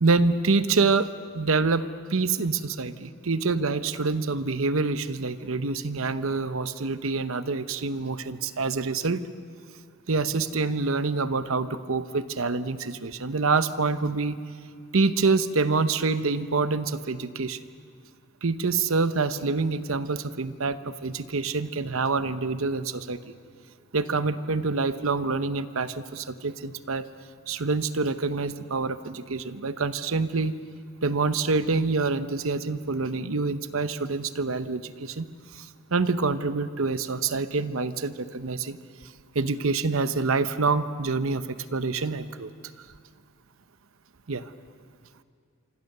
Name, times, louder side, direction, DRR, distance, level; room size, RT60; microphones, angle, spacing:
voice 1, 0.0-9.3 10.1-14.4 14.9-17.6 18.4-23.3 23.9-27.1 27.5-30.5 31.0-35.3 35.5-35.6 35.9-38.8 39.3-42.5 44.3-44.4, right 4 dB, 70° right, 12 dB, 0.9 m, -26 dB
26.0 x 25.5 x 6.7 m, 2.2 s
head